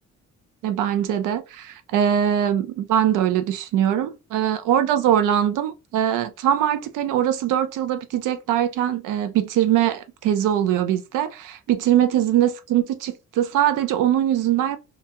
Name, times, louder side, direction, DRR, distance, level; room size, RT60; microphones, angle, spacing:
voice 1, 0.6-14.8, right 10 dB, 90° right, 0.5 m, -22 dB
2.8 x 2.2 x 2.8 m
cardioid pair, 100°, 30 cm